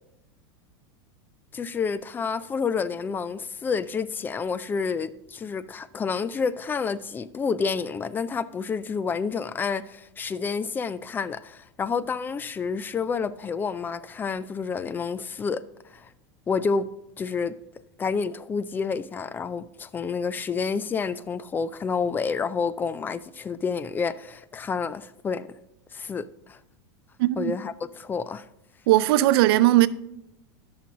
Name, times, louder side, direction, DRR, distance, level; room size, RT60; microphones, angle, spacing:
voice 1, 1.5-15.6 15.9-16.1 16.5-16.9 17.2-17.5 18.0-25.5 25.9-26.6 27.4-28.5, left 5 dB, 15° left, 0.3 m, -29 dB
voice 2, 27.2-27.5 28.9-29.9, right 16 dB, 65° right, 0.4 m, -18 dB
12.0 x 6.2 x 3.7 m
supercardioid pair, 135°, 13 cm